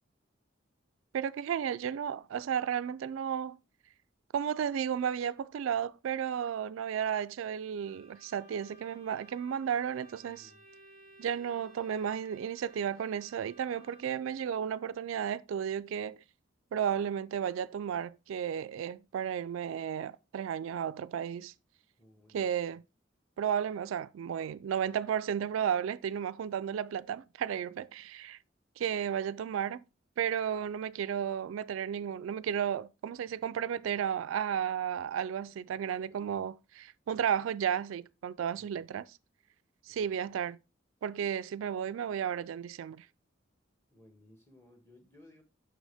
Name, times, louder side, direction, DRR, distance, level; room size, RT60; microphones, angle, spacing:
voice 1, 1.1-3.6 4.3-10.5 11.2-16.2 16.7-21.5 22.3-22.8 23.4-28.4 28.8-29.8 30.2-39.1 39.8-40.6 41.0-43.1, right 8 dB, 80° right, 0.3 m, -33 dB
Bowed string instrument, 7.7-14.3, right 1 dB, 40° left, 2.3 m, -59 dB
voice 2, 10.2-10.6 22.0-22.8 38.5-38.9 39.9-40.1 43.9-45.4, left 1 dB, 10° left, 1.7 m, -60 dB
6.2 x 5.9 x 3.4 m
head